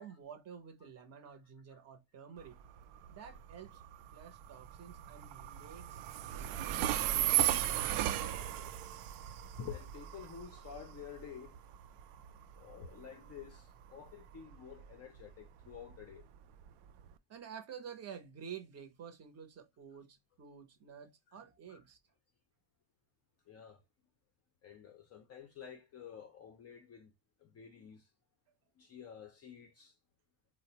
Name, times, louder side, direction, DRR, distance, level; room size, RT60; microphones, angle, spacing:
voice 1, 0.0-2.6 3.1-3.8 4.1-6.0 6.3-6.5 17.3-22.0, right 7 dB, 35° right, 0.6 m, -50 dB
Train, 2.4-17.1, right 12 dB, 90° right, 0.5 m, -37 dB
voice 2, 9.6-11.6 12.6-16.2 21.3-21.4 21.7-21.8 23.5-23.8 24.6-27.1 27.4-28.1 28.8-29.9, left 7 dB, 35° left, 0.4 m, -50 dB
3.9 x 2.0 x 2.7 m
cardioid pair, 165°, 48 cm